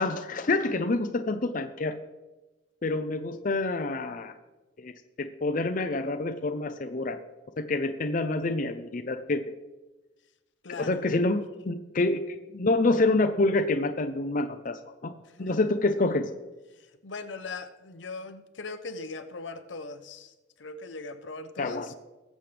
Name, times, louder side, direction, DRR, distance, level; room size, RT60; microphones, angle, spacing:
voice 1, 0.0-1.9 2.8-4.3 4.8-4.9 5.2-7.2 7.7-9.4 10.8-15.1 15.4-16.3 21.6-21.9, left 2 dB, 45° left, 0.6 m, -27 dB
voice 2, 10.6-11.0 15.4-15.7 17.0-20.3 20.6-21.9, left 3 dB, 80° left, 0.9 m, -39 dB
20.5 x 7.5 x 3.4 m
head